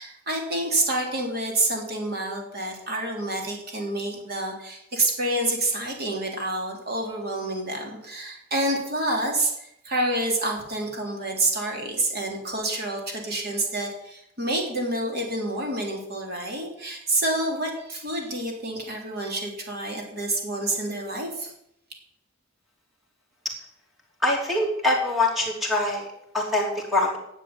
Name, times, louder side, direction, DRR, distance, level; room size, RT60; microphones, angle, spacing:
voice 1, 0.0-21.5, right 1 dB, 50° right, 1 dB, 3.7 m, -28 dB
voice 2, 24.2-26.1 26.3-27.2, left 2 dB, ahead, -1 dB, 3.1 m, -24 dB
10.5 x 7.5 x 9.7 m, 0.78 s
head